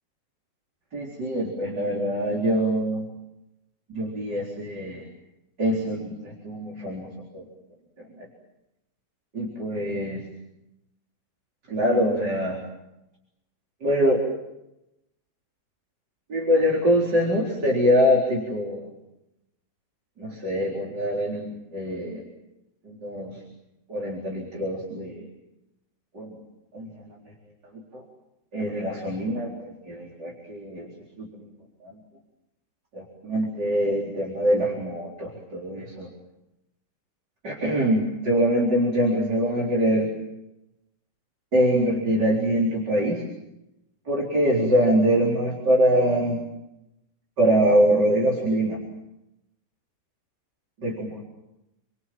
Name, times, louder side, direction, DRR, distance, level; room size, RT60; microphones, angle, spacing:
voice 1, 0.9-3.0 3.9-5.1 5.6-7.4 8.1-8.3 9.3-10.2 11.7-12.6 13.8-14.2 16.3-18.9 20.2-22.2 22.8-23.4 23.9-25.3 26.1-26.4 26.7-27.1 27.9-28.0 28.5-30.9 31.2-31.5 31.8-32.0 32.9-36.1 37.4-40.1 41.5-43.2 44.1-46.4 47.4-48.8 50.8-51.2, equal, 90° right, -2 dB, 4.9 m, -24 dB
29.0 x 24.0 x 7.6 m, 0.90 s
omnidirectional pair, 1.8 m